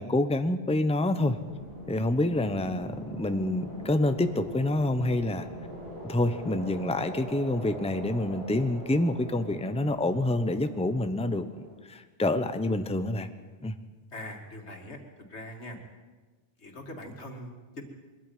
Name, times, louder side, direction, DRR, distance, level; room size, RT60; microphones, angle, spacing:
voice 1, 0.0-1.4 1.9-5.5 6.0-13.3 13.6-13.8, left 1 dB, 5° left, 9 dB, 0.8 m, -27 dB
sound 1, 1.2-11.7, equal, 65° right, 7.7 m, -42 dB
voice 2, 14.1-15.8 16.6-17.8, left 1 dB, 90° left, 3 dB, 2.8 m, -42 dB
22.5 x 13.5 x 9.3 m, 1.4 s
omnidirectional pair, 1.1 m